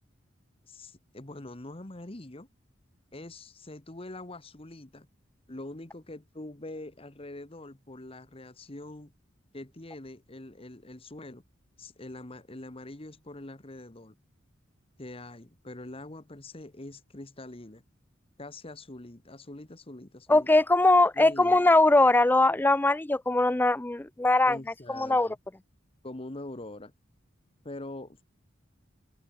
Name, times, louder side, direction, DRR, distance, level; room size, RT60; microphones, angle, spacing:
voice 1, 0.7-2.5 3.1-5.1 5.5-9.1 9.5-11.4 11.8-14.2 15.0-17.8 18.4-20.5 21.1-21.7 24.5-25.4 26.0-26.9 27.6-28.2, left 2 dB, 30° left, 1.4 m, -43 dB
voice 2, 20.3-24.6 24.9-25.3, left 2 dB, 10° left, 0.4 m, -21 dB
head